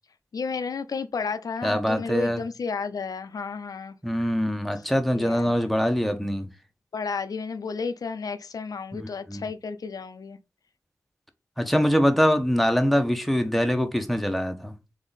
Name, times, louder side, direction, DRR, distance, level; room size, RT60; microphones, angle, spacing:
voice 1, 0.3-3.9 5.1-5.5 6.9-10.4, left 5 dB, 85° left, 0.5 m, -32 dB
voice 2, 1.6-2.4 4.0-6.5 8.9-9.4 11.6-14.7, equal, ahead, 0.8 m, -23 dB
3.7 x 3.5 x 4.0 m
wide cardioid pair, 65°, 6 cm